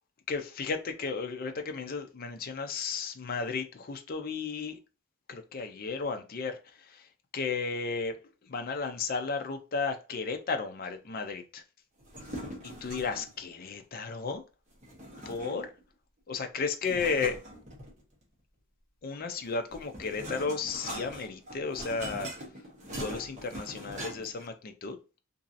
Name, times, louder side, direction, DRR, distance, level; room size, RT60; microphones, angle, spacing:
voice 1, 0.3-4.8 5.3-8.2 8.4-11.6 12.6-14.4 15.3-15.7 16.3-17.4 19.0-22.3 22.9-25.0, left 4 dB, 45° left, 0.4 m, -34 dB
sound 1, 12.0-13.4 14.8-15.8 16.8-18.2 19.4-24.5, right 1 dB, 35° right, 1.0 m, -42 dB
3.0 x 2.6 x 2.5 m
head